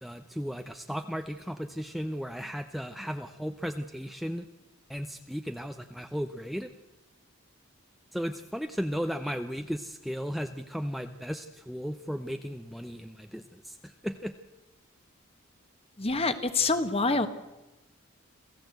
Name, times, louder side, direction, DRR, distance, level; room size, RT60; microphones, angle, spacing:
voice 1, 0.0-4.5 4.9-6.7 8.1-14.3, equal, ahead, 7 dB, 0.7 m, -35 dB
voice 2, 16.0-17.3, left 3 dB, 30° left, 10 dB, 1.5 m, -26 dB
27.5 x 16.0 x 7.9 m, 1.0 s
head